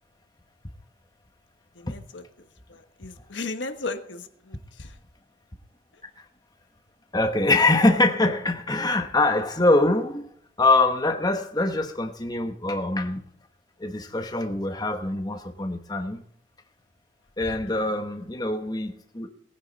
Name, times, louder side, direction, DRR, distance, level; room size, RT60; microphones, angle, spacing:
voice 1, 1.7-5.0 5.9-6.0 17.4-18.0, left 3 dB, 75° left, 1.3 m, -37 dB
voice 2, 7.1-10.2 10.6-13.2 13.8-16.2 17.4-19.3, left 2 dB, 20° left, 1.1 m, -23 dB
19.0 x 9.9 x 4.1 m
head